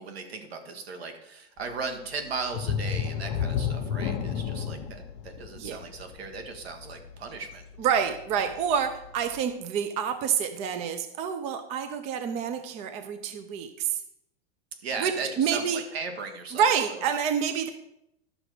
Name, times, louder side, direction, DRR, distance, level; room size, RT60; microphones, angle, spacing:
voice 1, 0.0-7.6 8.4-8.5 14.8-16.6 16.9-17.0, right 4 dB, 75° right, 5 dB, 2.1 m, -37 dB
sound 1, 2.5-8.0 8.4-8.6 9.0-9.1, left 7 dB, 55° left, 1.2 m, -31 dB
voice 2, 7.8-14.0 15.0-15.8 16.5-17.7, right 7 dB, 20° right, 9 dB, 0.6 m, -28 dB
12.0 x 6.2 x 4.9 m, 0.81 s
supercardioid pair, 155°, 31 cm